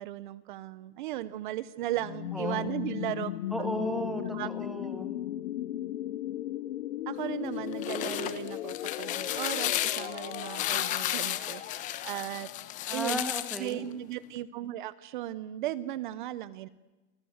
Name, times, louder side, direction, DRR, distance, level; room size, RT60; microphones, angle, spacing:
voice 1, 0.0-3.3 3.6-3.8 4.3-4.5 7.1-12.5 12.9-13.2 13.6-16.7, right 14 dB, 45° right, 18 dB, 0.8 m, -36 dB
sound 1, 2.0-13.7, left 13 dB, 80° left, 1.0 m, -37 dB
voice 2, 2.3-2.6 3.5-5.1 12.9-13.9, equal, ahead, 7 dB, 2.2 m, -35 dB
sound 2, 7.6-13.7, left 14 dB, 20° left, 1.2 m, -33 dB
29.5 x 25.0 x 8.0 m, 1.1 s
supercardioid pair, 175°, 36 cm